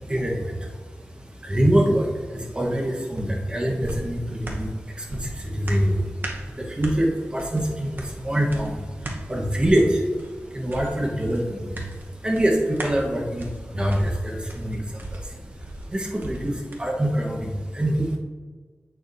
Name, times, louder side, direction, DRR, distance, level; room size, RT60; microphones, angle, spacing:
voice 1, 0.0-18.2, right 1 dB, 20° right, 0 dB, 1.1 m, -25 dB
sound 1, 3.2-16.8 17.2-17.3, right 1 dB, 50° right, 0.9 m, -38 dB
7.8 x 6.6 x 2.6 m, 1.5 s
wide cardioid pair, 95°, 5 cm